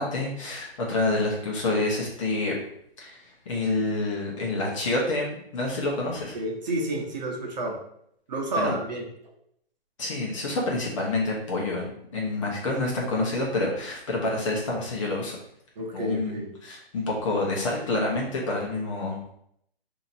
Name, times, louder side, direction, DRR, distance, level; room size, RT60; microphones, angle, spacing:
voice 1, 0.0-2.6 3.0-6.4 8.6-8.7 10.0-15.4 15.9-19.3, left 2 dB, 30° left, -2 dB, 0.9 m, -28 dB
voice 2, 6.3-7.8 8.3-9.0 15.8-16.5, right 1 dB, 45° right, 0 dB, 1.0 m, -30 dB
5.7 x 2.8 x 2.7 m, 0.71 s
hypercardioid pair, 160°, 30 cm